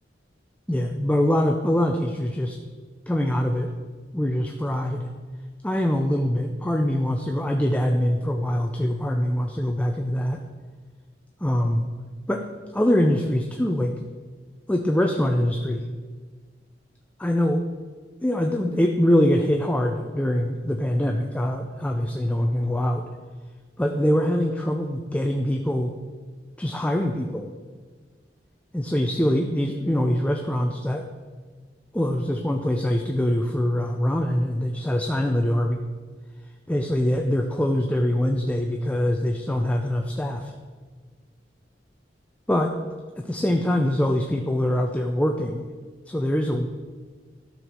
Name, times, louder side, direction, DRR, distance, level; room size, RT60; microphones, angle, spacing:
voice 1, 0.7-2.6 3.1-3.7 4.1-5.1 5.6-10.4 11.4-11.8 12.3-12.5 12.7-13.9 14.7-15.9 17.2-17.6 18.2-23.0 23.8-25.9 26.6-27.5 28.7-31.1 31.9-35.8 36.7-40.5 42.5-42.8 43.2-45.6 46.1-46.7, left 1 dB, 10° left, 3 dB, 0.5 m, -23 dB
12.0 x 4.7 x 6.6 m, 1.5 s
head